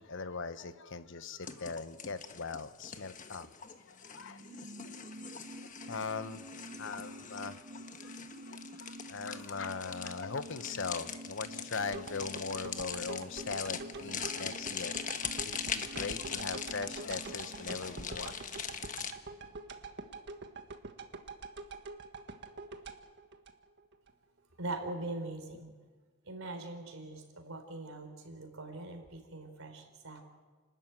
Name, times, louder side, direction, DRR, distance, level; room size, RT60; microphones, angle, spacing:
voice 1, 0.0-4.4 5.0-6.5 6.8-7.6 8.0-8.2 8.4-18.3, left 4 dB, 65° left, 11 dB, 1.1 m, -40 dB
sound 1, 1.4-19.1, left 7 dB, 40° left, 1.3 m, -42 dB
sound 2, 3.9-19.1 19.4-19.5, right 1 dB, 40° right, 0.7 m, -49 dB
sound 3, 11.9-24.1 24.5-24.6, right 3 dB, 55° right, 1.6 m, -46 dB
voice 2, 24.5-25.7 26.2-30.2, right 2 dB, 80° right, 5 dB, 4.3 m, -42 dB
30.0 x 13.5 x 9.4 m, 1.4 s
head